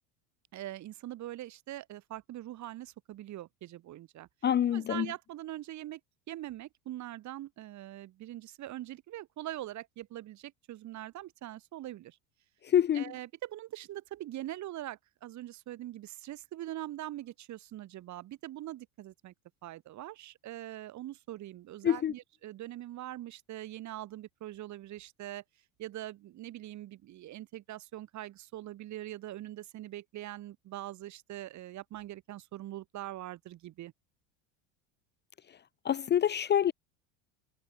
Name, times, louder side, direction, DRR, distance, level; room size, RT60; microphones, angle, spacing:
voice 1, 0.5-4.3 4.7-6.0 6.3-12.2 12.9-19.3 19.6-25.4 25.8-33.9, right 14 dB, 45° right, 3.6 m, -43 dB
voice 2, 4.4-5.1 12.6-13.0 21.8-22.1 35.8-36.7, left 10 dB, 25° left, 0.8 m, -26 dB
supercardioid pair, 105°, 38 cm